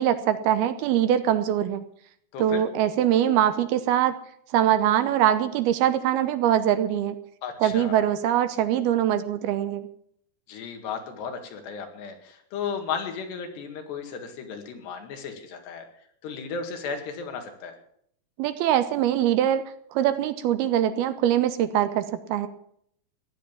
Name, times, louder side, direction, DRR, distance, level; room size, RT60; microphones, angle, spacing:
voice 1, 0.0-1.8 2.4-4.2 4.5-7.2 7.6-9.9 18.4-19.6 19.9-22.5, right 11 dB, 75° right, 12 dB, 2.6 m, -23 dB
voice 2, 2.3-2.6 7.4-8.1 10.5-15.9 16.2-17.8, left 6 dB, 80° left, 5 dB, 4.2 m, -35 dB
15.0 x 10.5 x 7.2 m, 0.67 s
omnidirectional pair, 4.8 m